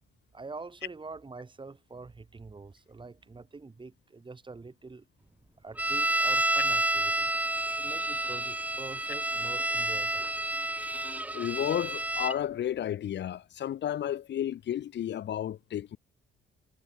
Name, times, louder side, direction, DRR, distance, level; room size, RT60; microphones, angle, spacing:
voice 1, 0.3-5.0 5.6-7.3 7.7-10.3, right 3 dB, 25° right, 2.4 m, -45 dB
sound 1, 5.8-12.4, right 1 dB, 10° right, 0.6 m, -29 dB
voice 2, 11.3-16.0, left 11 dB, 65° left, 1.2 m, -32 dB
cardioid pair, 90°, 20 cm